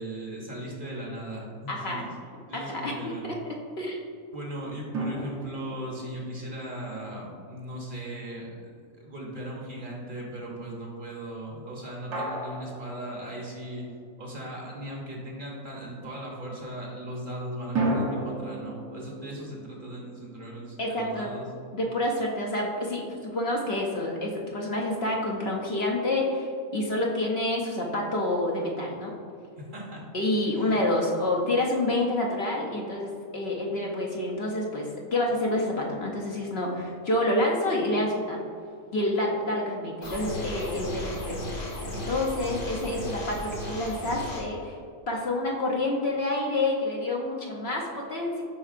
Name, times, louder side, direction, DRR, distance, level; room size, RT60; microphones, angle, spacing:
voice 1, 0.0-3.3 4.3-13.9 14.2-21.5 29.6-30.0 30.5-30.8, right 1 dB, 45° right, -2 dB, 1.0 m, -38 dB
voice 2, 1.7-2.0 2.5-4.0 20.8-21.3 21.7-29.2 30.1-38.4 38.9-41.5 41.9-44.8 45.1-48.4, left 1 dB, 55° left, -1 dB, 0.9 m, -28 dB
sound 1, 4.9-8.3 12.1-14.1 17.7-20.8, right 2 dB, 85° right, 1.4 m, -34 dB
sound 2, 40.0-44.4, left 1 dB, 75° left, 2.1 m, -35 dB
7.2 x 5.5 x 2.5 m, 2.3 s
omnidirectional pair, 1.4 m